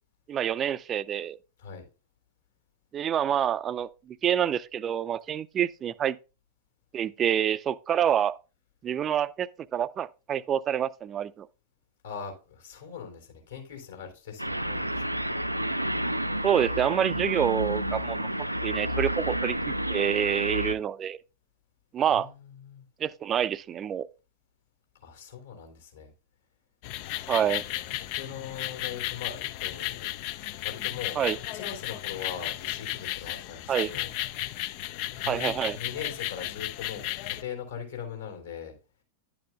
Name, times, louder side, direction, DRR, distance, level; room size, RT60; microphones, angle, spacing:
voice 1, 0.3-1.4 2.9-3.9 4.2-6.2 6.9-8.3 8.8-11.5 16.4-18.3 18.6-21.2 21.9-22.3 23.0-24.1 27.3-27.6 31.2-31.4 33.7-33.9 35.3-35.8, right 9 dB, 25° right, 0.5 m, -27 dB
voice 2, 12.0-15.1 22.1-22.8 25.0-26.1 27.2-31.2 31.5-34.6 35.1-38.7, left 7 dB, 65° left, 3.9 m, -41 dB
sound 1, 14.4-20.7, right 1 dB, 90° right, 0.4 m, -30 dB
sound 2, 26.8-37.4, left 15 dB, 45° left, 0.4 m, -34 dB
11.0 x 9.0 x 2.3 m
figure-of-eight pair, 90°, 0 cm